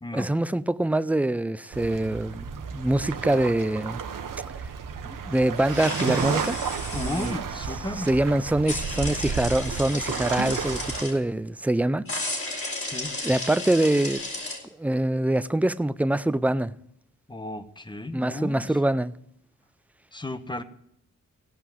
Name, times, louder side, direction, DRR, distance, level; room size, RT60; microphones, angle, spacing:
voice 1, 0.1-4.0 5.1-6.6 6.9-7.3 8.0-12.1 12.6-12.7 13.2-14.2 14.8-16.7 18.1-19.1, right 1 dB, 5° right, 0.4 m, -24 dB
sound 1, 1.7-11.0, right 6 dB, 70° right, 1.1 m, -32 dB
sound 2, 5.7-7.3 8.7-11.1 12.1-14.6, left 2 dB, 40° left, 4.2 m, -33 dB
voice 2, 6.9-8.1 12.8-13.1 17.3-18.8 20.1-20.6, left 1 dB, 15° left, 1.1 m, -34 dB
16.5 x 5.7 x 7.3 m
cardioid pair, 75°, 33 cm